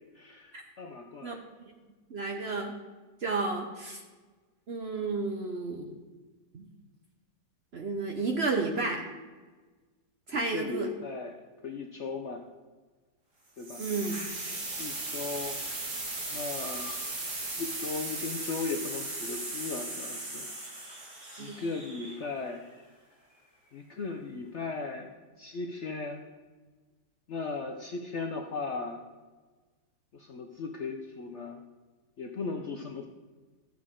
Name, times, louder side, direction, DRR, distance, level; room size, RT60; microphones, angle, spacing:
voice 1, 0.1-1.4 10.3-11.4 11.6-12.5 13.6-13.9 14.8-15.6 16.3-16.9 17.6-20.5 21.4-22.6 23.7-25.1 25.4-26.2 27.3-29.0 30.1-31.6 32.2-33.1, left 4 dB, 60° left, 3 dB, 0.7 m, -37 dB
voice 2, 2.1-2.7 3.2-4.0 4.7-5.9 6.5-6.7 7.7-9.0 10.3-10.9 13.8-14.1 21.4-21.6, right 3 dB, 50° right, 2 dB, 0.8 m, -32 dB
sound 1, 13.6-22.5, right 2 dB, 70° right, 2.8 m, -37 dB
13.0 x 7.5 x 3.7 m, 1.3 s
omnidirectional pair, 1.8 m